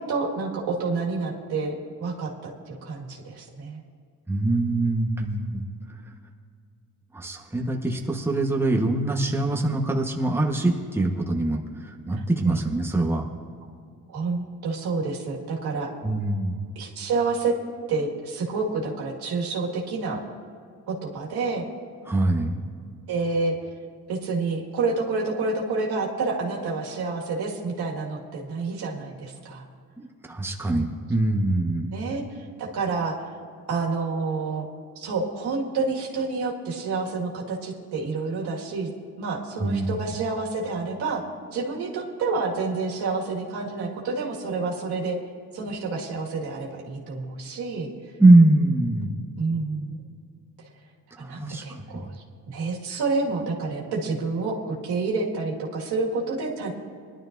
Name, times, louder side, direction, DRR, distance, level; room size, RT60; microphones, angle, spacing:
voice 1, 0.1-3.8 12.5-12.6 14.1-15.9 16.8-17.5 17.9-20.2 20.9-21.6 23.1-23.5 24.1-29.6 31.9-33.1 33.7-34.7 35.0-38.9 39.2-41.2 41.5-45.2 45.5-47.9 49.4-50.0 51.2-52.1 52.5-56.7, right 4 dB, 80° right, -2 dB, 2.0 m, -28 dB
voice 2, 4.3-5.6 7.1-13.2 16.0-16.6 22.1-22.6 30.0-32.0 39.6-39.9 48.2-49.1 51.2-52.1, right 2 dB, 5° right, 0 dB, 1.2 m, -23 dB
19.5 x 11.5 x 2.6 m, 2.2 s
cardioid pair, 85°, 38 cm